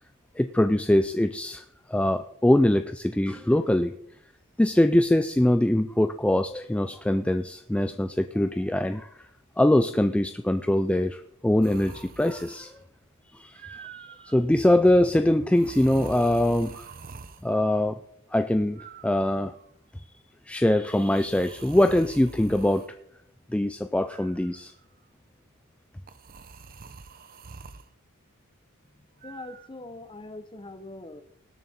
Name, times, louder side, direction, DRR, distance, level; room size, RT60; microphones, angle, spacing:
voice 1, 0.4-3.9 4.6-9.2 9.6-12.7 13.3-16.9 17.4-18.0 18.3-19.5 20.5-22.9 23.5-24.7, left 1 dB, 5° left, 9 dB, 0.3 m, -23 dB
sound 1, 11.6-12.8 13.5-14.4 15.5-17.5 18.8-19.7 20.8-22.9 24.1-24.8 26.1-27.9 29.2-29.7, right 4 dB, 40° right, 0.7 m, -45 dB
voice 2, 28.8-31.2, left 2 dB, 25° left, 11 dB, 0.8 m, -42 dB
19.0 x 7.0 x 4.3 m, 0.72 s
head